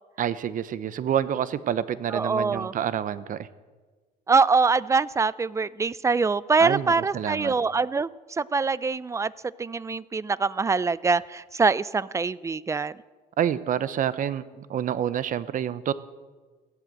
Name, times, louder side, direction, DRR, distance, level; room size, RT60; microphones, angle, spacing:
voice 1, 0.2-3.5 6.6-7.5 13.4-15.9, right 9 dB, 50° right, 15 dB, 0.8 m, -28 dB
voice 2, 2.1-2.7 4.3-9.3 9.6-12.9, right 4 dB, 15° right, 19 dB, 0.5 m, -24 dB
16.0 x 12.0 x 7.6 m, 1.4 s
cardioid pair, 110°, 17 cm